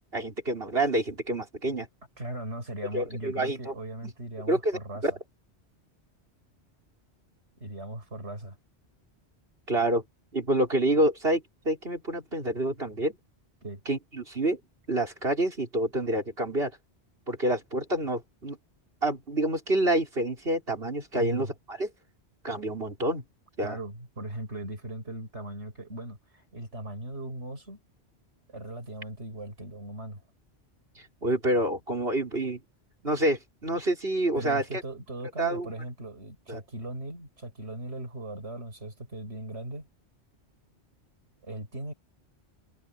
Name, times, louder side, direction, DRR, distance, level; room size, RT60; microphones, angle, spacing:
voice 1, 0.1-1.9 2.9-3.7 4.5-5.1 9.7-10.0 10.3-13.2 13.9-14.6 14.9-16.7 17.3-18.6 19.0-21.9 22.4-23.2 23.6-23.8 31.2-32.6 33.0-34.6 35.4-35.7 36.5-36.6, right 1 dB, 60° right, 5.9 m, -27 dB
voice 2, 2.2-5.2 7.6-8.6 13.6-13.8 21.1-21.5 23.6-27.8 28.5-30.2 34.4-39.9 41.4-41.9, right 1 dB, 80° right, 6.1 m, -38 dB
omnidirectional pair, 1.2 m